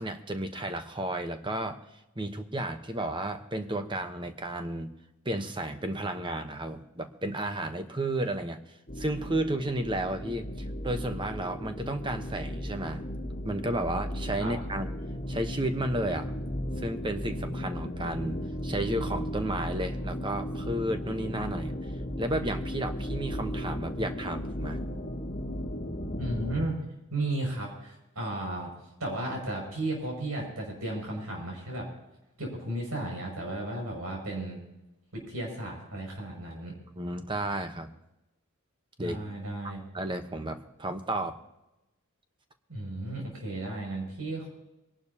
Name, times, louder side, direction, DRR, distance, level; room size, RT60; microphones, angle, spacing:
voice 1, 0.0-1.8 2.2-4.9 5.2-8.6 9.0-10.5 10.8-13.0 13.4-14.9 15.3-16.3 16.8-21.7 22.2-24.9 37.0-37.9 39.0-39.2 39.9-41.4, right 1 dB, 20° right, 7 dB, 1.0 m, -32 dB
sound 1, 8.9-26.7, equal, 35° left, 1.4 m, -35 dB
voice 2, 26.2-26.8 27.1-28.7 29.0-31.9 32.4-34.6 35.1-36.7 39.0-39.8 42.7-44.5, right 1 dB, 90° right, 0 dB, 6.5 m, -34 dB
23.5 x 11.5 x 2.9 m, 0.94 s
head